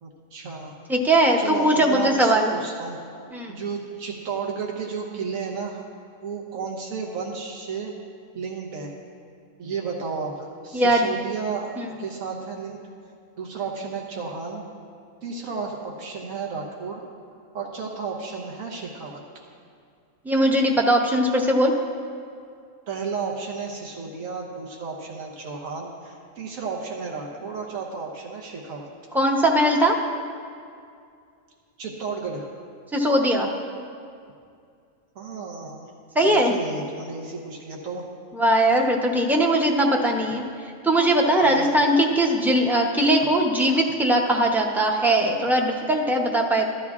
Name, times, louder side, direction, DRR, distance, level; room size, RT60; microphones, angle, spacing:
voice 1, 0.0-0.7 1.4-3.0 3.5-5.8 6.2-7.9 8.3-8.9 9.6-12.8 13.4-14.6 15.2-17.0 17.5-19.2 22.9-28.9 31.8-32.5 35.1-35.9 36.2-38.0 41.4-41.8, right 5 dB, 90° right, -1 dB, 1.4 m, -33 dB
voice 2, 0.9-2.5 3.3-3.6 10.7-11.1 11.8-11.9 20.2-21.7 29.1-30.0 32.9-33.5 36.1-36.5 38.3-40.4 40.8-46.6, right 1 dB, ahead, 0 dB, 0.4 m, -20 dB
15.0 x 12.0 x 2.4 m, 2.4 s
omnidirectional pair, 1.4 m